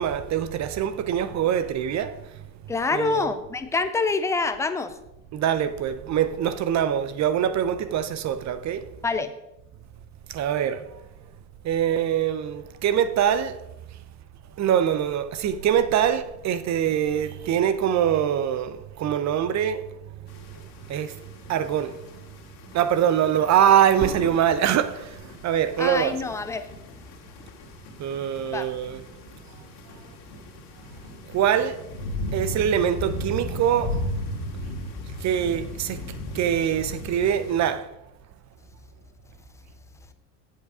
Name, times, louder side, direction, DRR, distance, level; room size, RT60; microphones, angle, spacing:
voice 1, 0.0-2.2 2.9-3.4 5.3-8.8 10.3-10.9 11.6-13.6 14.6-19.8 20.9-21.1 21.5-22.0 22.7-26.2 28.0-29.0 31.3-31.8 32.3-34.0 35.2-36.0 36.3-37.9, right 9 dB, 35° right, 0.7 m, -23 dB
voice 2, 2.7-4.9 9.0-9.3 25.8-26.7 28.5-28.7, left 4 dB, 5° left, 0.3 m, -26 dB
sound 1, 20.3-37.7, left 1 dB, 50° left, 2.2 m, -36 dB
8.3 x 7.4 x 4.9 m
hypercardioid pair, 90°, 50 cm